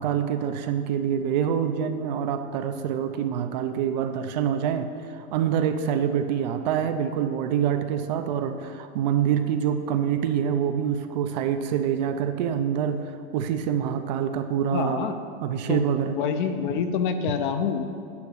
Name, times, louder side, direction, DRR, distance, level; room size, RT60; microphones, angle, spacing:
voice 1, 0.0-13.0 13.3-15.1 15.4-16.2, right 8 dB, 40° right, 8 dB, 0.6 m, -26 dB
voice 2, 14.7-15.2 15.7-15.8 16.1-17.8, left 7 dB, 50° left, 8 dB, 0.8 m, -26 dB
9.5 x 6.0 x 8.3 m, 2.4 s
supercardioid pair, 170°, 32 cm